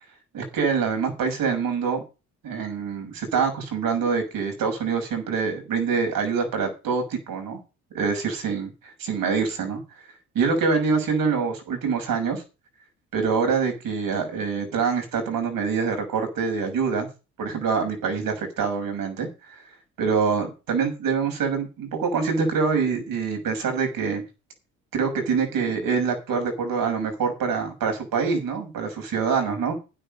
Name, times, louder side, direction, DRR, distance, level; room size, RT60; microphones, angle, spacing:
voice 1, 0.3-2.0 2.4-7.6 7.9-9.8 10.3-12.4 13.1-17.1 17.4-19.5 20.0-24.2 24.9-29.7, right 5 dB, 60° right, 4 dB, 6.7 m, -25 dB
12.5 x 10.0 x 5.5 m, 0.29 s
hypercardioid pair, 60°, 38 cm